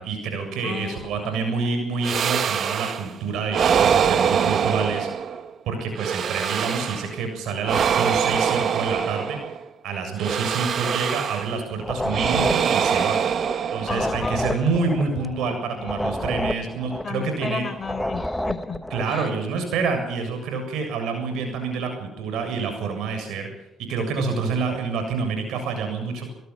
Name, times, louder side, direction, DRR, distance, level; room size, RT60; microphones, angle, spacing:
voice 1, 0.0-5.1 5.7-9.4 9.8-13.2 13.7-17.6 18.9-23.5 23.8-26.3, right 4 dB, 80° right, 5 dB, 7.5 m, -27 dB
voice 2, 0.6-1.5 13.9-16.3 17.0-18.8 19.1-19.3, left 5 dB, 40° left, 9 dB, 4.4 m, -34 dB
sound 1, 2.0-3.1 3.5-5.5 5.9-7.2 7.6-9.6 10.2-11.6 12.1-14.2, right 7 dB, 60° right, 1.4 m, -23 dB
sound 2, 11.8-19.1, left 1 dB, 5° left, 1.3 m, -29 dB
28.5 x 18.0 x 5.8 m, 0.87 s
supercardioid pair, 65°, 0 cm